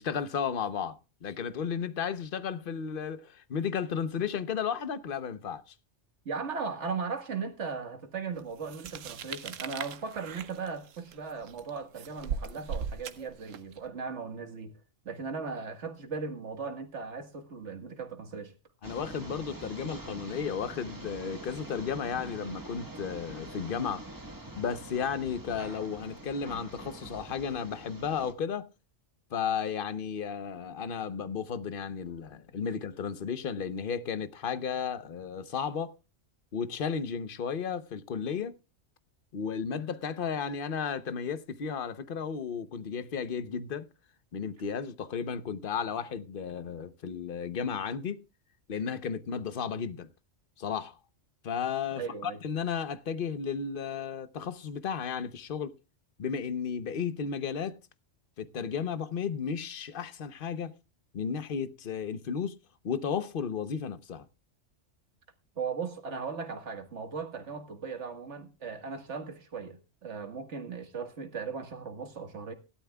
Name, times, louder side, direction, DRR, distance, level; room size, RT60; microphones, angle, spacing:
voice 1, 0.0-5.7 18.8-24.1 24.6-28.7 29.3-36.0 36.5-38.5 39.3-43.9 44.3-48.2 48.7-50.1 50.6-51.0 51.4-55.7 56.2-57.8 58.4-60.7 61.1-62.5 62.8-64.3, left 7 dB, 50° left, 1.0 m, -34 dB
voice 2, 6.3-18.5 52.0-52.4 65.6-72.5, right 5 dB, 65° right, 1.9 m, -37 dB
sound 1, 8.6-13.8, right 6 dB, 90° right, 1.2 m, -39 dB
sound 2, 18.8-28.3, right 1 dB, 15° right, 1.4 m, -45 dB
17.0 x 12.5 x 2.3 m
omnidirectional pair, 1.3 m